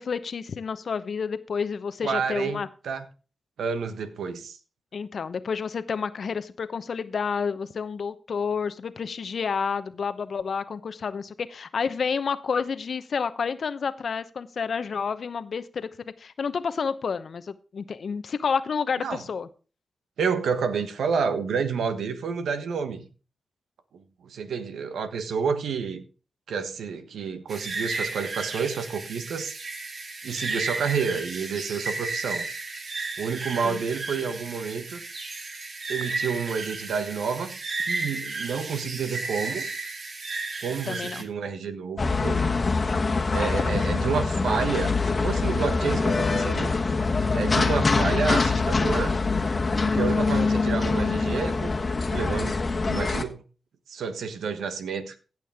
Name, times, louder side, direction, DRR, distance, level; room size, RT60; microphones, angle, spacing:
voice 1, 0.0-2.7 4.9-15.9 16.2-19.5 33.6-33.8 40.9-41.2 43.7-43.9, left 6 dB, 65° left, 0.9 m, -30 dB
voice 2, 2.0-3.0 3.6-4.6 19.0-19.2 20.2-23.0 23.9-26.0 26.5-29.6 30.2-32.5 33.2-35.0 35.9-37.5 37.9-39.7 40.6-42.5 43.3-46.8 47.3-49.2 49.8-51.7 52.1-53.4 53.9-55.1, right 6 dB, 80° right, 1.2 m, -29 dB
sound 1, 27.5-41.2, right 3 dB, 60° right, 2.1 m, -33 dB
sound 2, 42.0-53.2, left 3 dB, 45° left, 1.4 m, -24 dB
16.5 x 6.3 x 3.6 m
supercardioid pair, 40°, 0 cm